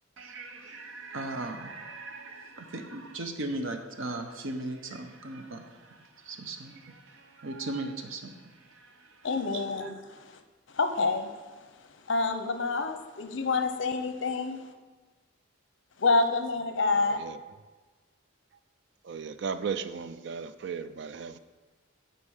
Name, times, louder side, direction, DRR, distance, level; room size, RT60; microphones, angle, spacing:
voice 1, 0.2-9.9, right 2 dB, 75° right, 6 dB, 0.9 m, -38 dB
voice 2, 9.2-10.4 10.7-11.3 12.1-14.7 16.0-17.2, left 3 dB, 65° left, 7 dB, 0.7 m, -28 dB
voice 3, 17.0-17.4 19.0-21.4, right 6 dB, 60° right, 12 dB, 0.4 m, -36 dB
8.8 x 4.3 x 6.4 m, 1.3 s
head